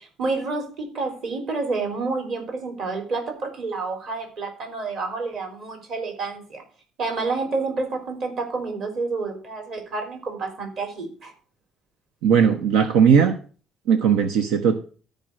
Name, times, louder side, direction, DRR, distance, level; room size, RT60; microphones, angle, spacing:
voice 1, 0.0-6.6 7.0-11.3, right 3 dB, 40° right, 4 dB, 3.9 m, -29 dB
voice 2, 12.2-13.3 13.9-14.8, right 7 dB, 85° right, 8 dB, 1.1 m, -18 dB
13.5 x 5.4 x 6.3 m, 0.39 s
cardioid pair, 180°, 0 cm